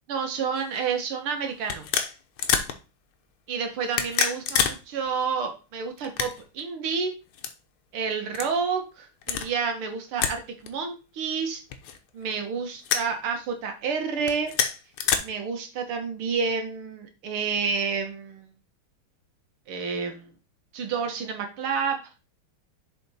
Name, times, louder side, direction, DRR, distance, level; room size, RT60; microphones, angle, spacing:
voice 1, 0.1-1.9 3.5-7.1 7.9-11.6 12.1-14.5 15.2-18.5 19.7-20.3 20.7-22.0, right 5 dB, 85° right, 5 dB, 2.2 m, -29 dB
sound 1, 0.6-0.8 1.6-2.7 3.8-4.8 5.1-5.2 6.0-6.6 7.3-7.5 8.3-8.5 9.2-9.5 10.2-10.4 10.7-10.8 11.7-12.2 12.8-13.1 14.2-15.2, left 8 dB, 85° left, 1.7 m, -26 dB
7.0 x 4.5 x 4.2 m, 0.31 s
omnidirectional pair, 2.3 m